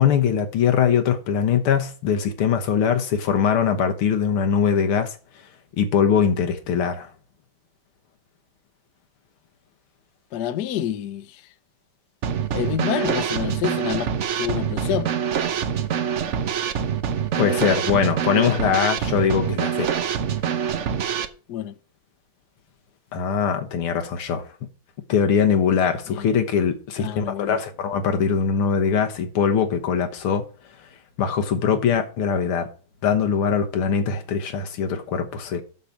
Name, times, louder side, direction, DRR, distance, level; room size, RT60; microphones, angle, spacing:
voice 1, 0.0-5.2 5.8-7.1 17.4-19.9 23.1-24.5 25.1-30.5 31.2-32.7 33.0-35.6, left 7 dB, 85° left, 2.1 m, -22 dB
voice 2, 10.3-11.4 12.5-14.1 14.3-15.1 21.5-21.7 26.1-26.3 27.0-27.6, left 11 dB, 65° left, 1.1 m, -28 dB
Drum kit / Snare drum, 12.2-21.3, right 8 dB, 70° right, 0.6 m, -25 dB
7.2 x 6.8 x 7.1 m
omnidirectional pair, 2.3 m